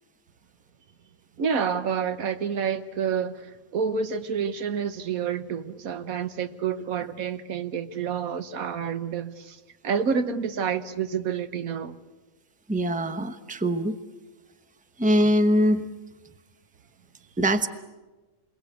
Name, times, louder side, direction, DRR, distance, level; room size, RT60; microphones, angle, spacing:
voice 1, 1.4-9.6 9.8-12.0, right 6 dB, 90° right, 1.5 m, -28 dB
voice 2, 12.7-14.0 15.0-15.9 17.4-17.7, equal, 5° right, 0.8 m, -22 dB
28.5 x 22.5 x 8.3 m
omnidirectional pair, 1.4 m